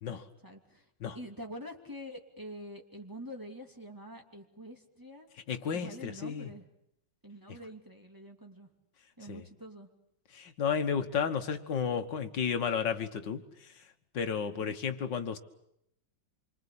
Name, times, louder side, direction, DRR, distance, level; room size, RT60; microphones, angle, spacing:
voice 1, 0.4-0.9 1.1-5.3 5.7-6.7 7.2-8.7 9.2-9.9 14.5-14.8, equal, 10° right, 1 dB, 2.9 m, -46 dB
voice 2, 5.5-6.5 9.3-9.4 10.3-13.7 14.1-15.4, left 6 dB, 75° left, 7 dB, 2.1 m, -32 dB
27.5 x 25.0 x 8.7 m, 0.78 s
omnidirectional pair, 2.0 m